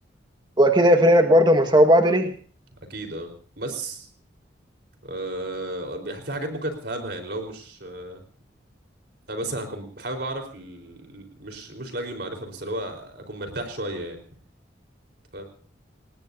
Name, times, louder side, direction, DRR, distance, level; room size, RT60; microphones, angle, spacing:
voice 1, 0.6-2.3, equal, 25° right, 5 dB, 1.6 m, -16 dB
voice 2, 2.9-3.3 3.6-4.1 5.0-8.2 9.3-14.2 15.3-15.4, right 1 dB, 60° right, 4 dB, 4.1 m, -33 dB
27.5 x 19.5 x 2.7 m, 0.42 s
head